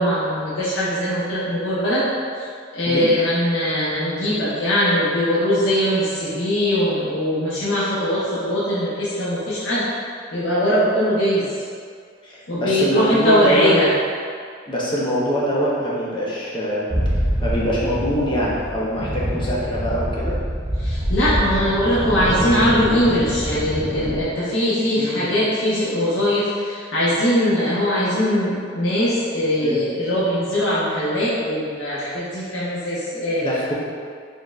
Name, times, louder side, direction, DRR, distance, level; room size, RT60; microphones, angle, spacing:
voice 1, 0.0-2.1 2.4-2.5 2.7-9.9 10.3-11.5 12.5-13.9 20.8-33.5, equal, 80° left, -10 dB, 0.8 m, -21 dB
voice 2, 12.2-13.7 14.7-16.9 17.4-20.4 24.9-25.4 29.5-29.8 33.4-33.7, equal, 25° left, -6 dB, 0.6 m, -23 dB
sound 1, 16.9-24.2, equal, 15° right, 0.4 m, -25 dB
4.2 x 3.5 x 2.4 m, 2.1 s
head